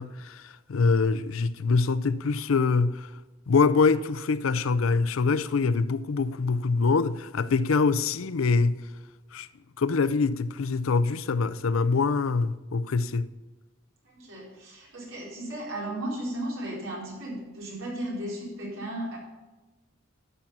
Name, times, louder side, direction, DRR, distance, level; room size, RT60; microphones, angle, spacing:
voice 1, 0.0-3.1 3.5-8.8 9.3-9.5 9.8-13.3, left 4 dB, 85° left, 0.5 m, -24 dB
voice 2, 14.1-19.2, right 1 dB, 75° right, 4.2 m, -35 dB
12.5 x 7.3 x 5.5 m
head